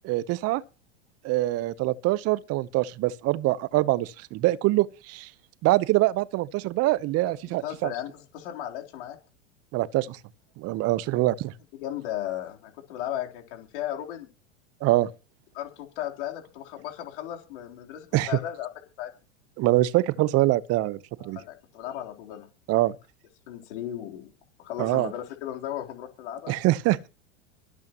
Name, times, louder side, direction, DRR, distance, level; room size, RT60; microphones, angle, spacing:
voice 1, 0.0-0.6 1.2-5.3 5.6-7.9 9.7-10.2 10.6-11.5 14.8-15.1 18.1-18.3 19.6-21.4 22.7-22.9 24.8-25.1 26.5-27.1, right 17 dB, 40° right, 0.9 m, -24 dB
voice 2, 7.4-9.2 11.8-14.3 15.5-18.7 19.0-19.1 21.2-22.5 23.5-24.3 24.6-26.6, left 11 dB, 65° left, 3.8 m, -35 dB
24.0 x 8.6 x 3.0 m
hypercardioid pair, 95°, 37 cm